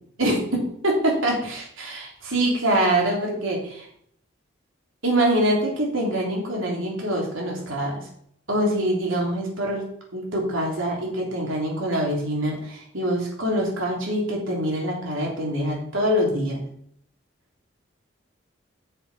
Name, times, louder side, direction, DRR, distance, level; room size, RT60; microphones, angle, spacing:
voice 1, 0.8-3.9 5.0-8.0 8.5-16.6, right 1 dB, 85° right, -2 dB, 3.4 m, -24 dB
7.2 x 7.2 x 5.7 m, 0.67 s
head